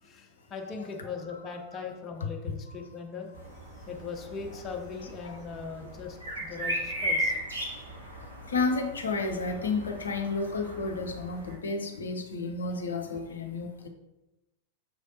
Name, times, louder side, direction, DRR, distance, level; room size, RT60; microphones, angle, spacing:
voice 1, 0.0-3.3 3.7-7.4, left 5 dB, 30° left, 3 dB, 0.7 m, -39 dB
voice 2, 2.7-3.0 5.2-5.4 7.5-7.6 8.5-13.9, left 3 dB, 70° left, 4 dB, 0.6 m, -32 dB
sound 1, 3.3-11.5, equal, 80° right, 1.0 m, -37 dB
6.1 x 3.2 x 2.7 m, 1.0 s
figure-of-eight pair, 90°, 0 cm